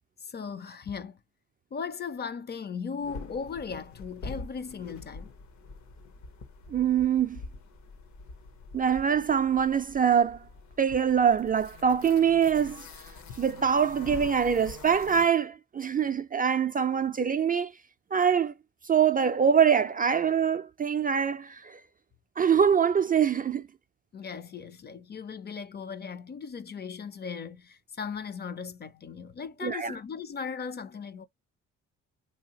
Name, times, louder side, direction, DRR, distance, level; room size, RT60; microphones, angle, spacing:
voice 1, 0.2-1.2 1.7-5.3 24.1-31.3, left 6 dB, 35° left, 0.5 m, -37 dB
sound 1, 3.0-15.3, left 3 dB, 70° left, 1.1 m, -45 dB
voice 2, 6.7-7.4 8.7-10.4 10.8-12.8 13.4-17.7 18.1-18.5 18.8-21.8 22.4-23.7 29.6-29.9, right 7 dB, 30° right, 0.4 m, -24 dB
3.4 x 2.8 x 2.8 m
cardioid pair, 90°, 30 cm